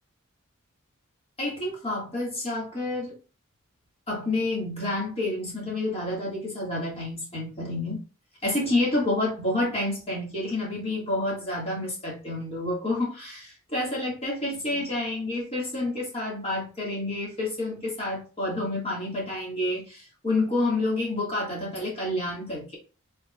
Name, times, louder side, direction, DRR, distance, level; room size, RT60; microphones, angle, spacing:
voice 1, 1.4-3.2 4.1-8.0 8.4-22.8, left 2 dB, 30° left, -3 dB, 1.9 m, -29 dB
5.3 x 3.7 x 2.4 m, 0.33 s
head